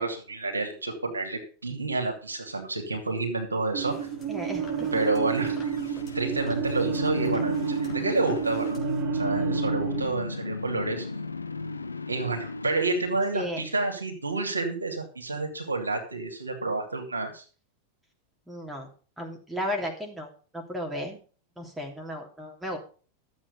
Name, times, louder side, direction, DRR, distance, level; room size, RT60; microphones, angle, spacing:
voice 1, 0.0-4.1 4.9-5.6 6.1-8.7 9.1-11.1 12.1-17.4, right 3 dB, 80° right, 3 dB, 2.6 m, -29 dB
sound 1, 3.7-10.0, right 8 dB, 35° right, 2.4 m, -30 dB
sound 2, 3.8-9.0, left 3 dB, 30° left, 3.6 m, -48 dB
voice 2, 4.3-4.9 13.3-13.6 18.5-18.9 19.2-20.3 20.5-21.2 21.6-22.8, equal, 5° right, 1 dB, 2.9 m, -34 dB
sound 3, 5.5-13.7, left 3 dB, 80° left, 0.7 m, -35 dB
13.0 x 7.7 x 5.3 m, 0.39 s
figure-of-eight pair, 90°, 0 cm